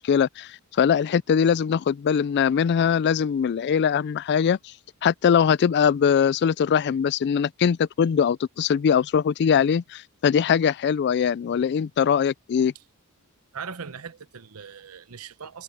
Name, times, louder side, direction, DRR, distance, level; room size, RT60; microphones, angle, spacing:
voice 1, 0.0-4.7 5.0-12.7, left 7 dB, 50° left, 0.3 m, -22 dB
voice 2, 13.5-15.6, right 6 dB, 75° right, 0.9 m, -39 dB
head